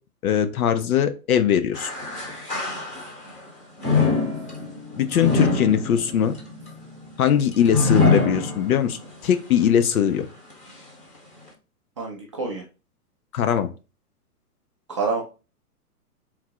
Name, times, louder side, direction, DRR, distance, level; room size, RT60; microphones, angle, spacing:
voice 1, 0.2-1.9 5.0-6.3 7.2-10.3 13.3-13.7, left 9 dB, 65° left, 10 dB, 0.8 m, -21 dB
sound 1, 1.7-3.3 3.8-9.1 9.5-9.6 10.5-10.6, left 4 dB, 15° left, 1.1 m, -24 dB
voice 2, 12.0-12.6 14.9-15.2, right 4 dB, 25° right, 0 dB, 0.3 m, -28 dB
3.8 x 2.4 x 4.5 m, 0.32 s
hypercardioid pair, 135°, 46 cm